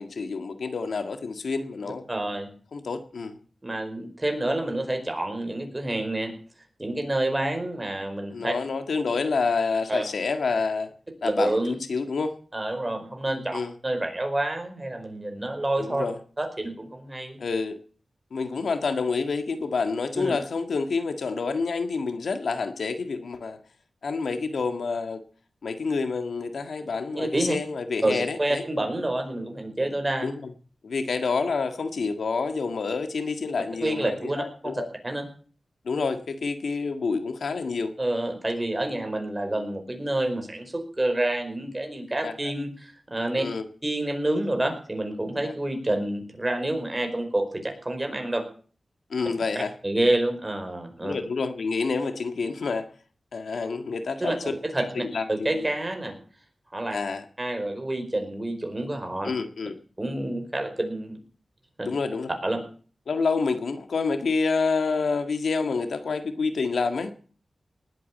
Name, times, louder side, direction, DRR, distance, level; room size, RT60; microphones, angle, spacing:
voice 1, 0.0-2.0 2.7-3.4 8.3-10.9 11.2-12.4 13.5-13.7 15.8-16.2 17.4-17.8 18.3-23.6 24.0-25.2 25.6-28.7 30.2-30.5 30.8-34.9 35.8-37.9 39.6-39.7 42.2-42.5 43.4-43.7 45.4-45.5 49.1-49.7 51.0-52.9 53.3-55.7 56.9-57.2 59.2-59.8 61.8-62.3 63.1-67.1, left 4 dB, 85° left, 8 dB, 1.8 m, -28 dB
voice 2, 2.1-2.5 3.6-6.3 6.8-8.5 9.9-10.0 11.2-11.8 12.5-16.0 16.4-17.4 20.2-20.3 27.1-27.5 28.0-30.3 33.8-34.7 35.0-35.2 38.0-43.4 43.8-48.4 49.8-51.1 54.2-54.3 54.7-54.8 55.3-56.2 56.7-56.9 57.4-59.3 60.0-61.2 61.8-61.9 62.4-62.6, right 1 dB, 20° right, 5 dB, 4.9 m, -28 dB
19.5 x 8.6 x 8.5 m, 0.43 s
wide cardioid pair, 100°, 0 cm